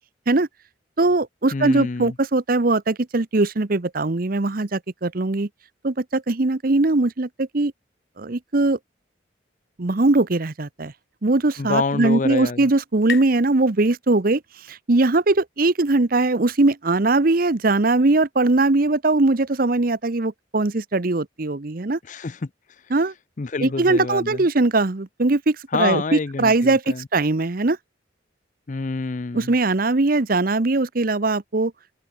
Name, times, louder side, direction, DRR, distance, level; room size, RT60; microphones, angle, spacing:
voice 1, 1.0-5.5 5.8-7.7 8.2-8.8 9.8-10.9 11.2-14.4 14.7-22.0 22.9-23.1 23.6-27.8 29.3-31.7, right 2 dB, 50° right, 0.9 m, -20 dB
voice 2, 1.5-2.1 11.6-12.7 22.0-22.5 23.4-24.5 25.7-27.1 28.7-29.5, left 4 dB, 40° left, 0.5 m, -27 dB
sound 1, 11.6-15.0, left 7 dB, 60° left, 1.2 m, -39 dB
head